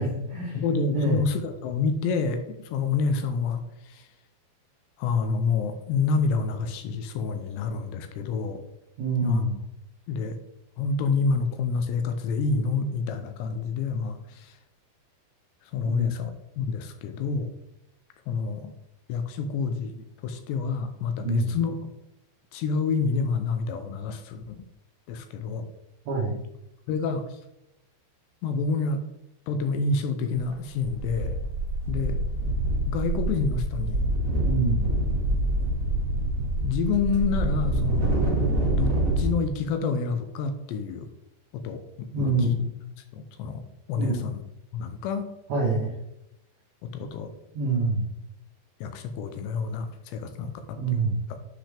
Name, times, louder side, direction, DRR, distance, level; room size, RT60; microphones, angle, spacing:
voice 1, 0.0-0.6 0.9-1.2 9.0-9.6 15.9-16.1 21.2-21.5 26.1-26.4 34.4-34.9 42.1-42.5 44.0-44.2 45.5-45.9 47.5-48.1 50.8-51.2, right 3 dB, 75° right, -4 dB, 1.6 m, -26 dB
voice 2, 0.5-4.1 5.0-8.6 9.2-9.5 10.1-10.4 10.8-14.5 15.7-17.5 18.3-18.7 19.1-21.8 22.5-24.7 25.1-25.7 26.9-27.2 28.4-29.0 29.5-31.4 31.9-32.2 32.9-34.1 36.6-38.2 38.7-41.1 41.5-42.6 43.1-43.6 43.9-44.4 44.7-45.4 46.8-47.3 48.8-51.0 51.3-51.4, left 4 dB, 85° left, 8 dB, 2.7 m, -28 dB
sound 1, 30.4-30.5 30.8-39.3, right 1 dB, 20° right, 2.4 m, -26 dB
8.7 x 5.3 x 3.4 m, 0.86 s
omnidirectional pair, 5.3 m